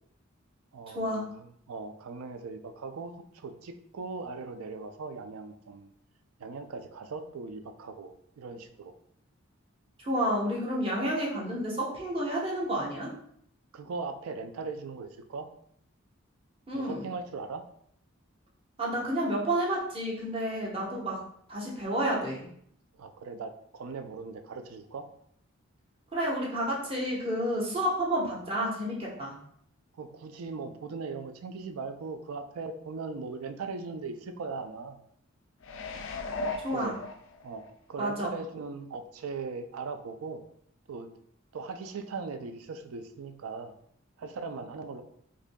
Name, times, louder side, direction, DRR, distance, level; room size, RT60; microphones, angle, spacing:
voice 1, 0.7-1.2 1.7-5.9 6.4-8.9 13.7-15.5 16.7-17.6 22.9-25.1 29.2-29.3 29.9-35.0 36.7-37.0 37.4-37.6 37.9-40.4 40.9-41.1 41.5-43.7 44.2-45.0, right 4 dB, 90° right, 8 dB, 0.4 m, -39 dB
voice 2, 10.0-13.1 16.7-17.1 18.8-21.2 21.5-22.4 26.1-29.3 36.6-36.9 38.0-38.3, right 1 dB, 25° right, -5 dB, 0.9 m, -30 dB
sound 1, 35.6-37.7 38.2-38.3, left 3 dB, 65° left, 0.3 m, -37 dB
4.8 x 2.7 x 2.2 m, 0.67 s
head